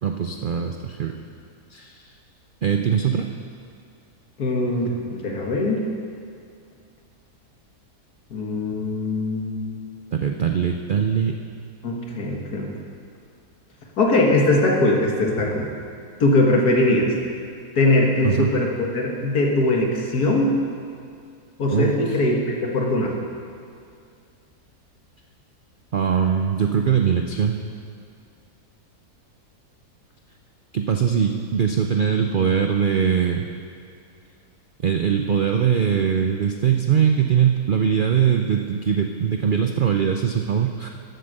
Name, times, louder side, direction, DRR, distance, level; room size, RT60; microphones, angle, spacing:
voice 1, 0.0-1.1 1.7-2.1 2.6-3.3 10.1-11.4 18.2-18.5 21.7-22.2 25.9-27.6 30.7-33.5 34.8-40.9, right 7 dB, 85° right, 4 dB, 0.4 m, -21 dB
voice 2, 4.4-5.9 8.3-9.8 11.8-12.7 14.0-15.7 16.2-17.1 17.8-20.6 21.6-22.4 22.7-23.2, left 2 dB, 75° left, 0 dB, 2.1 m, -21 dB
13.0 x 8.0 x 6.5 m, 2.3 s
omnidirectional pair, 1.7 m